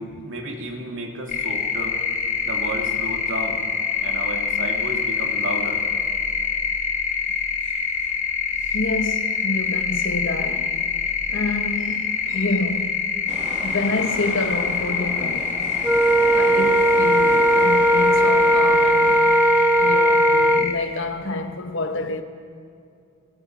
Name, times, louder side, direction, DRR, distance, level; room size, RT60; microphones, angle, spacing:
voice 1, 0.0-2.0 2.4-3.6 4.0-5.8, right 1 dB, 55° right, 2.6 m, -32 dB
sound 1, 1.3-20.7, left 6 dB, 35° left, 1.8 m, -25 dB
voice 2, 8.6-10.8 11.3-13.1 13.6-15.5 16.3-19.5 19.8-22.2, left 2 dB, 55° left, 1.1 m, -28 dB
sound 2, 13.3-19.2, right 1 dB, 35° right, 3.5 m, -35 dB
Wind instrument woodwind instrument, 15.8-20.7, right 1 dB, 5° right, 0.5 m, -17 dB
23.0 x 19.5 x 6.2 m
head